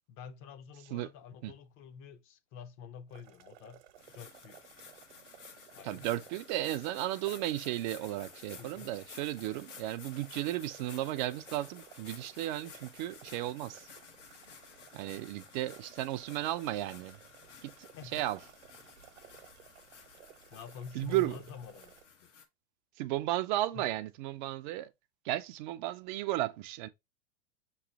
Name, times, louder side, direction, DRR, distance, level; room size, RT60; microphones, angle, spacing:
voice 1, 0.1-3.8 4.1-4.6 5.7-6.1 8.6-8.9 17.9-18.2 20.5-21.9 22.2-22.3 23.7-23.9, left 6 dB, 35° left, 0.7 m, -48 dB
sound 1, 3.1-22.0, right 10 dB, 65° right, 0.9 m, -58 dB
sound 2, 4.0-22.4, left 6 dB, 90° left, 1.2 m, -54 dB
voice 2, 5.8-13.9 14.9-17.2 17.6-18.4 20.9-21.4 23.0-24.9 25.2-26.9, right 15 dB, 45° right, 0.4 m, -34 dB
5.9 x 3.1 x 2.8 m
hypercardioid pair, 100°, 35 cm